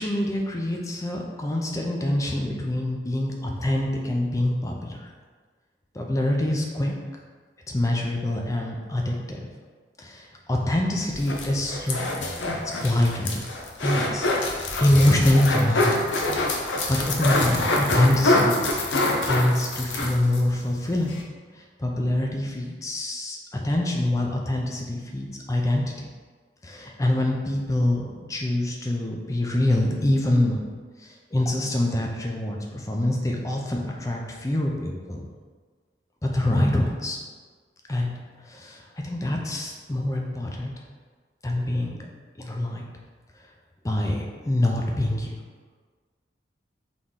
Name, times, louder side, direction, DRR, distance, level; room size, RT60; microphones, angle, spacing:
voice 1, 0.0-5.1 5.9-6.9 7.7-9.5 10.0-12.2 12.8-13.5 13.8-16.1 16.6-18.6 19.3-21.2 21.8-25.8 26.6-30.6 31.0-35.3 36.2-37.2 37.9-38.2 38.5-40.7 41.4-42.0 42.4-42.8 43.8-45.3, left 1 dB, 15° left, 0 dB, 0.4 m, -25 dB
sound 1, 11.1-20.5 20.8-20.9 21.1-21.2, left 2 dB, 90° left, 0.6 m, -25 dB
4.0 x 3.0 x 3.7 m, 1.5 s
head